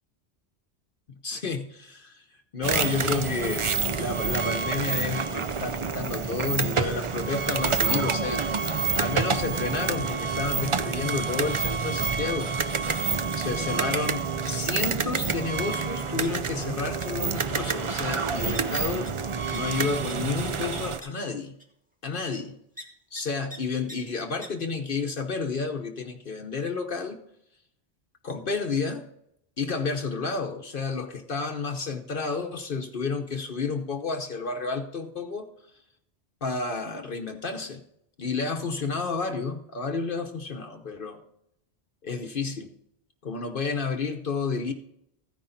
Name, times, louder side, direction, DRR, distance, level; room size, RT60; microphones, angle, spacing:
voice 1, 1.2-2.2 2.5-8.4 9.0-12.5 13.3-21.5 22.0-22.6 23.1-27.2 28.2-29.1 29.6-35.5 36.4-37.8 38.2-41.2 42.0-42.7 43.2-44.7, left 4 dB, 55° left, 5 dB, 1.1 m, -31 dB
sound 1, 2.6-21.0, right 5 dB, 35° right, 0.5 m, -28 dB
sound 2, 13.8-14.0 14.2-14.9 15.2-15.7 16.2-16.3 16.6-16.7 17.0-17.1 17.4-17.5 18.0-18.1 18.5-18.6 19.0-19.1 19.5-19.6 20.1-20.2 20.4-20.5 21.0-21.1 21.6-21.7 22.8-22.9 23.1-23.2 23.5-23.6 23.9-24.0 24.4-24.5, equal, 5° right, 2.1 m, -43 dB
14.5 x 10.0 x 4.0 m, 0.76 s
omnidirectional pair, 1.1 m